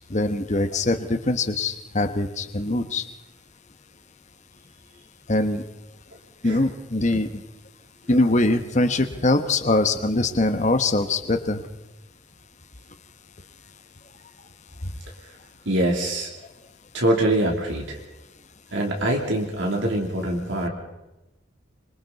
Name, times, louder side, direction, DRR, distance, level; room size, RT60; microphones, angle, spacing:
voice 1, 0.1-3.1 5.3-5.6 6.4-7.4 8.1-11.7 14.8-14.9, left 2 dB, 35° left, 8 dB, 1.1 m, -23 dB
voice 2, 15.6-16.3 16.9-18.0 18.7-20.7, right 1 dB, 65° right, 0 dB, 3.1 m, -24 dB
26.5 x 24.5 x 4.1 m, 1.0 s
head